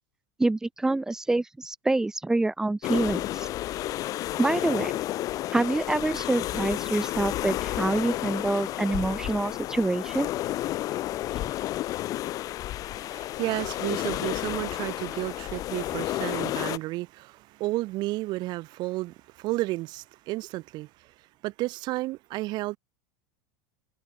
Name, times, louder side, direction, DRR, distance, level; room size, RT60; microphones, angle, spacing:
voice 1, 0.4-3.5 4.4-4.9 5.5-10.3 11.4-11.5, right 2 dB, 5° right, 0.6 m, -26 dB
sound 1, 2.8-16.8, left 15 dB, 35° left, 0.8 m, -31 dB
voice 2, 12.8-21.1 21.4-22.8, right 19 dB, 40° right, 5.8 m, -32 dB
supercardioid pair, 160°, 11 cm